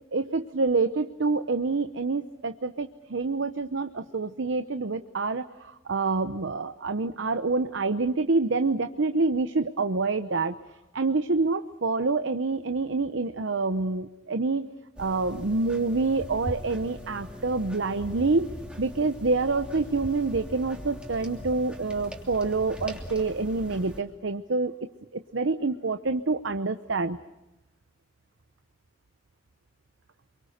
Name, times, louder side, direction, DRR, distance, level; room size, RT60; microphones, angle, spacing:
voice 1, 0.1-10.6 10.9-14.7 15.0-18.5 18.8-24.7 25.1-27.2, right 3 dB, 65° right, 10 dB, 0.8 m, -27 dB
sound 1, 15.0-24.0, equal, 5° right, 3.0 m, -40 dB
28.0 x 23.5 x 6.6 m, 1.0 s
head